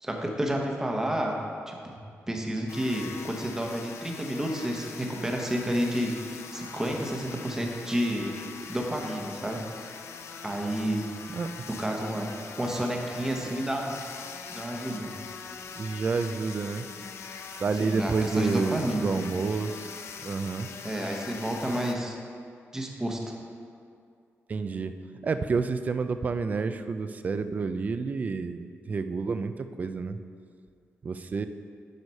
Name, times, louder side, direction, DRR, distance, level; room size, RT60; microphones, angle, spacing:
voice 1, 0.0-1.3 1.7-2.0 2.3-8.4 8.7-9.6 9.9-10.0 10.4-11.1 11.8-12.3 12.6-14.0 14.5-15.1 17.8-19.1 20.8-22.2 22.7-23.4, right 1 dB, 10° right, 0 dB, 1.0 m, -30 dB
sound 1, 2.7-21.9, left 6 dB, 70° left, 0.5 m, -42 dB
voice 2, 15.7-16.9 17.6-20.7 24.5-24.9 25.2-30.2 31.0-31.5, right 4 dB, 35° right, 10 dB, 0.4 m, -29 dB
10.5 x 4.9 x 5.4 m, 2.3 s
wide cardioid pair, 175°, 5 cm